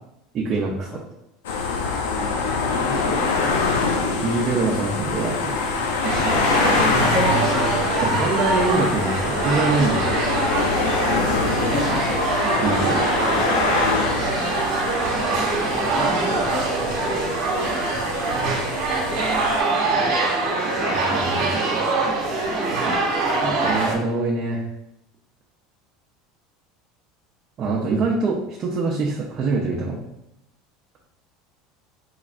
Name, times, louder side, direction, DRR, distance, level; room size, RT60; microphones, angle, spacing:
voice 1, 0.3-1.0 4.2-5.6 8.0-10.2 12.6-13.3 20.9-21.7 23.4-24.6 27.6-30.0, right 3 dB, 40° right, -4 dB, 0.7 m, -24 dB
sound 1, 1.4-19.6, left 4 dB, 85° left, 0.6 m, -25 dB
voice 2, 2.1-3.7 4.5-4.8 6.3-8.1 11.0-12.2 13.8-14.2 15.6-17.3 22.5-23.0, left 3 dB, 35° left, -1 dB, 1.0 m, -31 dB
sound 2, 6.0-24.0, right 3 dB, 65° right, 1.1 m, -23 dB
4.0 x 3.2 x 2.5 m, 0.84 s
supercardioid pair, 100°, 0 cm